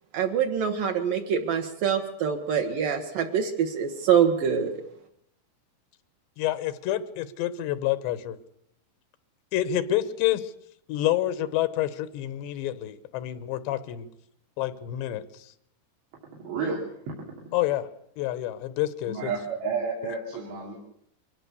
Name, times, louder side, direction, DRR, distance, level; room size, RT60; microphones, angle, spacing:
voice 1, 0.1-4.8, right 8 dB, 65° right, 3 dB, 2.6 m, -25 dB
voice 2, 6.4-8.4 9.5-10.5 10.9-14.1 14.6-15.2 17.5-17.9 18.2-19.3, left 13 dB, 90° left, 14 dB, 3.3 m, -28 dB
voice 3, 16.4-17.2 19.1-20.8, right 4 dB, 80° right, -2 dB, 5.0 m, -31 dB
24.0 x 17.5 x 6.9 m, 0.74 s
omnidirectional pair, 4.9 m